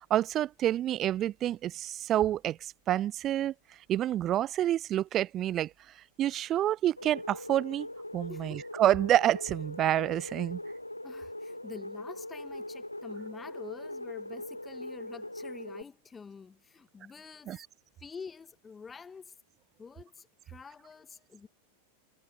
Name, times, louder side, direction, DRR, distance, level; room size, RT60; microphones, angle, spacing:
voice 1, 0.1-3.5 3.9-5.7 6.2-7.9 8.1-10.6 17.5-17.6, right 12 dB, 30° right, 2.5 m, -28 dB
sound 1, 7.0-15.8, left 1 dB, 85° left, 1.2 m, -41 dB
voice 2, 8.3-8.7 11.0-17.7 18.0-19.3 19.8-21.5, left 5 dB, 15° left, 6.3 m, -47 dB
figure-of-eight pair, 90°, 0 cm